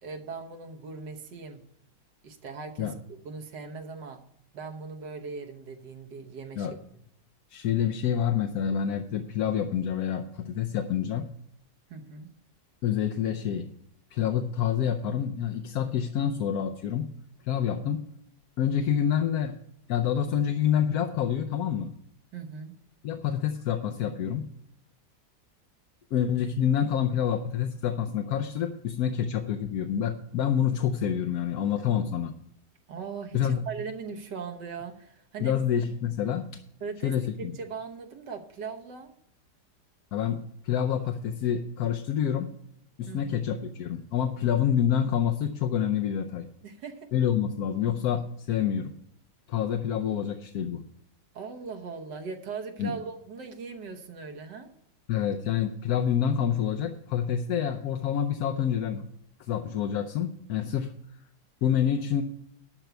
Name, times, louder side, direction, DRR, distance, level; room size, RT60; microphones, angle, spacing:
voice 1, 0.0-1.6 2.2-2.9 3.2-4.2 4.5-6.7 6.9-7.0 11.9-12.3 22.3-22.7 32.9-35.5 36.8-39.1 43.1-43.4 46.6-47.1 51.3-54.7, right 5 dB, 75° right, 4 dB, 1.7 m, -39 dB
voice 2, 7.5-11.3 12.8-13.7 14.1-17.1 17.4-18.0 18.6-19.6 19.9-21.9 23.0-24.5 26.1-32.3 33.3-33.6 35.4-36.6 37.0-37.5 40.1-42.5 43.0-46.5 47.1-48.9 49.5-50.8 52.8-52.9 55.1-59.0 59.5-60.9 61.6-62.2, left 9 dB, 65° left, 6 dB, 1.1 m, -27 dB
12.0 x 4.6 x 8.1 m, 0.73 s
omnidirectional pair, 1.9 m